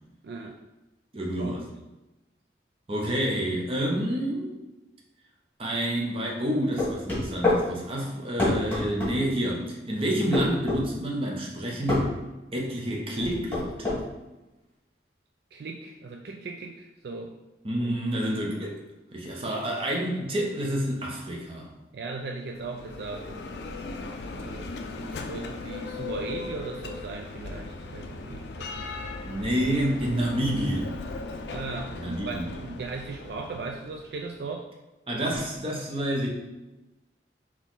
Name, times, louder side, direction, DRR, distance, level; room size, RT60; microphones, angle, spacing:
voice 1, 0.2-0.6 1.4-1.7 15.5-17.4 21.9-23.4 24.3-29.0 31.5-34.7, right 3 dB, 65° right, 2 dB, 0.3 m, -38 dB
voice 2, 1.1-1.6 2.9-4.5 5.6-12.1 12.5-14.0 17.6-18.8 19.1-21.7 29.2-31.0 31.9-32.4 35.1-36.3, right 1 dB, 30° right, -1 dB, 0.8 m, -28 dB
sound 1, 6.8-7.6 8.4-9.1 10.3-10.8 11.9-12.1 13.2-14.0, left 2 dB, 10° left, 1.5 m, -25 dB
Bell, 22.5-34.3, left 3 dB, 70° left, 0.4 m, -38 dB
4.0 x 3.0 x 3.9 m, 1.0 s
head